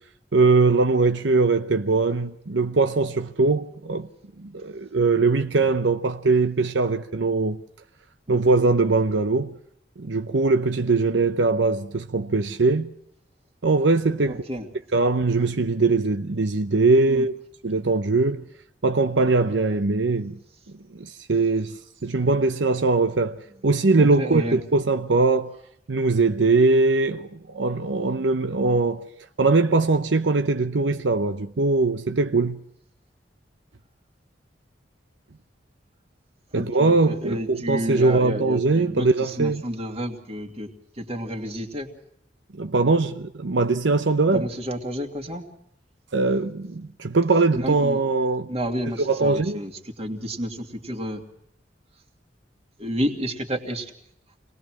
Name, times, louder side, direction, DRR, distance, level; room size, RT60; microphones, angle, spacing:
voice 1, 0.3-4.1 4.4-7.6 8.3-9.5 10.0-12.9 13.6-14.4 14.9-17.3 17.6-18.4 18.8-20.4 20.9-21.8 22.0-25.5 25.9-29.0 29.4-32.6 36.5-39.6 42.5-44.5 46.1-48.5 49.0-49.6, right 3 dB, 80° right, 0.8 m, -21 dB
voice 2, 14.2-14.7 17.1-17.3 24.0-24.6 36.5-40.7 41.0-41.9 44.3-45.4 47.5-48.0 48.5-51.2 52.8-53.9, equal, 35° right, 2.6 m, -30 dB
26.5 x 19.5 x 6.1 m
head